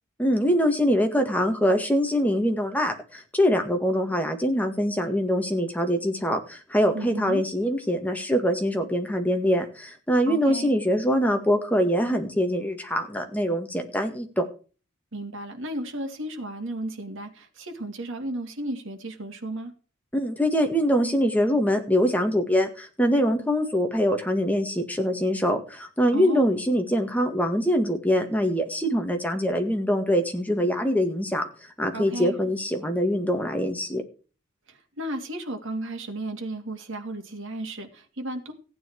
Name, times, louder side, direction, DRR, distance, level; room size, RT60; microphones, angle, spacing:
voice 1, 0.2-14.5 20.1-31.4 31.8-34.0, equal, 10° left, 5 dB, 1.9 m, -24 dB
voice 2, 6.9-7.4 10.3-10.7 15.1-19.7 26.1-26.4 31.9-32.4 34.7-38.5, right 1 dB, 65° right, 3 dB, 2.6 m, -34 dB
15.5 x 9.3 x 4.7 m, 0.37 s
head